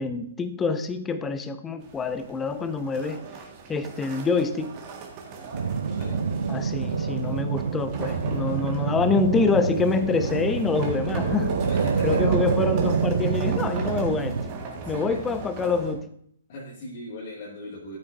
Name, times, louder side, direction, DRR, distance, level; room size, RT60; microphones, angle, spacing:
voice 1, 0.0-3.2 3.7-4.8 6.5-11.5 12.0-14.4 14.9-16.1, left 4 dB, 15° left, 11 dB, 0.6 m, -26 dB
sound 1, 1.8-15.9, right 4 dB, 30° right, 1.7 m, -37 dB
sound 2, 5.5-14.4, right 5 dB, 65° right, 0.7 m, -27 dB
voice 2, 5.9-6.2 11.7-12.2 14.8-15.2 16.5-18.0, left 1 dB, 45° left, -5 dB, 2.0 m, -38 dB
12.5 x 8.4 x 2.6 m, 0.67 s
figure-of-eight pair, 120°, 0 cm